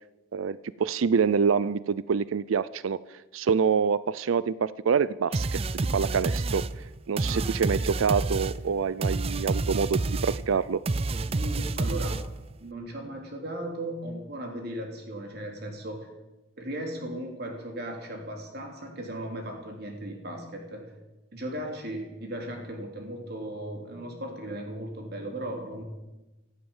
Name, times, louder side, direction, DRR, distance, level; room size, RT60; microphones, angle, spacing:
voice 1, 0.3-6.7 7.1-10.8, right 6 dB, 90° right, 18 dB, 0.4 m, -26 dB
sound 1, 5.3-12.5, right 3 dB, 30° right, 0.4 m, -29 dB
voice 2, 11.2-12.2 12.6-16.1 16.6-20.9 21.3-25.8, right 1 dB, 50° right, 2 dB, 3.5 m, -37 dB
14.0 x 14.0 x 7.3 m, 1.1 s
head